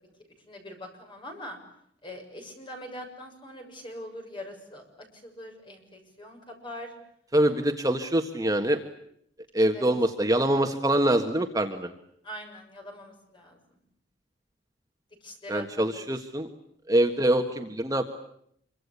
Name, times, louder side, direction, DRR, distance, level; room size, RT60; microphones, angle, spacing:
voice 1, 0.5-1.6 2.0-6.9 9.6-9.9 12.2-13.8 15.2-15.8, left 1 dB, 25° left, 3 dB, 7.0 m, -42 dB
voice 2, 7.3-8.8 9.5-11.9 15.5-16.5 16.9-18.0, right 1 dB, 20° right, 5 dB, 1.6 m, -24 dB
27.0 x 25.0 x 8.4 m, 0.72 s
head